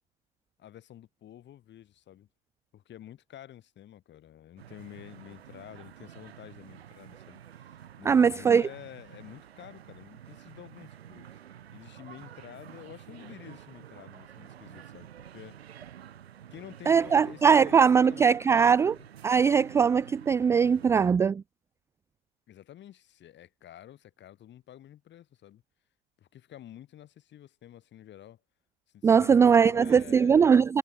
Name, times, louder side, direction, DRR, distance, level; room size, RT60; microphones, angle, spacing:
voice 1, 0.6-2.3 2.7-11.4 11.7-15.6 16.5-19.1 22.5-25.6 26.2-28.4 28.9-30.6, left 11 dB, 35° left, 6.6 m, -49 dB
sound 1, 4.6-21.1, right 10 dB, 75° right, 2.1 m, -49 dB
voice 2, 8.1-8.7 16.9-18.9 19.2-21.4 29.0-30.8, right 6 dB, 10° right, 0.3 m, -21 dB
figure-of-eight pair, 85°, 31 cm